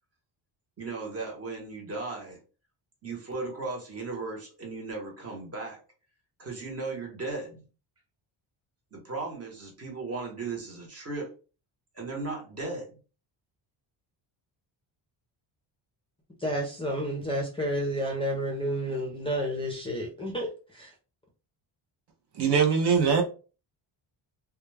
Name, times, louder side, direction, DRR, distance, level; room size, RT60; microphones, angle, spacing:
voice 1, 0.8-2.4 3.0-5.8 6.4-7.7 8.9-11.3 11.9-12.9, right 3 dB, 30° right, 0.9 m, -36 dB
voice 2, 16.4-20.9, equal, 10° left, 0.4 m, -30 dB
voice 3, 22.3-23.2, right 6 dB, 55° right, 0.6 m, -22 dB
2.2 x 2.2 x 3.2 m
cardioid pair, 165°, 48 cm